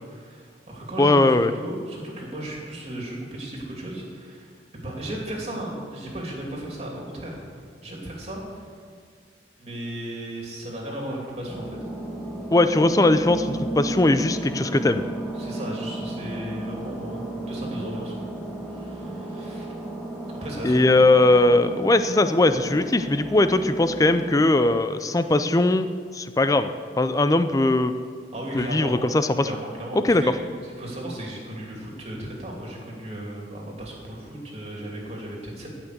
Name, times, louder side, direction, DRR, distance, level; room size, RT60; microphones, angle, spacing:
voice 1, 0.0-8.7 9.6-11.8 15.3-17.2 17.5-18.3 18.7-19.7 20.4-20.9 28.3-29.0 29.4-30.4 30.8-35.7, right 1 dB, 35° right, -2 dB, 2.8 m, -35 dB
voice 2, 1.0-1.5 12.5-15.0 20.6-28.0 28.5-29.5 29.9-30.3, left 2 dB, 20° left, 10 dB, 0.4 m, -20 dB
sound 1, 11.5-24.4, right 1 dB, ahead, 1.6 m, -34 dB
16.5 x 5.9 x 6.7 m, 2.1 s
head